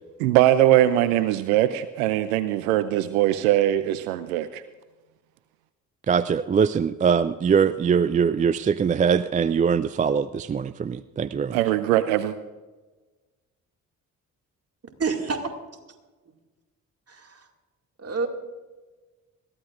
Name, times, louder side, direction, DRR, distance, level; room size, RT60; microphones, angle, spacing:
voice 1, 0.2-4.6 11.5-12.4, right 13 dB, 75° right, 14 dB, 0.6 m, -21 dB
voice 2, 6.1-11.6, right 6 dB, 20° right, 16 dB, 0.4 m, -22 dB
voice 3, 15.0-15.5 17.1-17.4 18.0-18.3, right 4 dB, 35° right, 4 dB, 2.3 m, -28 dB
21.5 x 14.5 x 2.6 m, 1.3 s
figure-of-eight pair, 40°, 43 cm